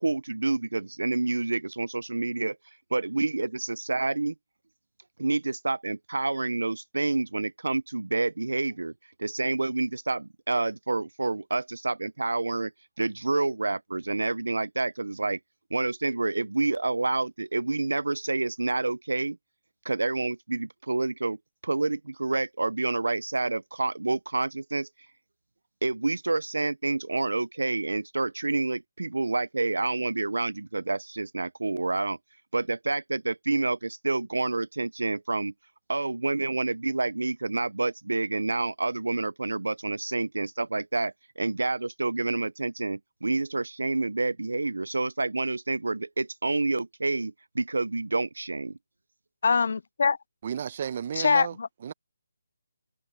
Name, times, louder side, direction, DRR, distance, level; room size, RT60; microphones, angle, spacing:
voice 1, 0.0-2.6 2.9-4.3 5.2-8.9 9.2-12.7 13.0-15.4 15.7-19.4 19.8-24.9 25.8-32.2 32.5-35.5 35.9-48.8, right 3 dB, 80° right, 0.9 m, -28 dB
voice 2, 49.4-50.2 51.2-51.7, left 5 dB, 60° left, 0.3 m, -23 dB
voice 3, 50.4-51.6 51.8-51.9, right 8 dB, 40° right, 1.1 m, -33 dB
figure-of-eight pair, 155°, 0 cm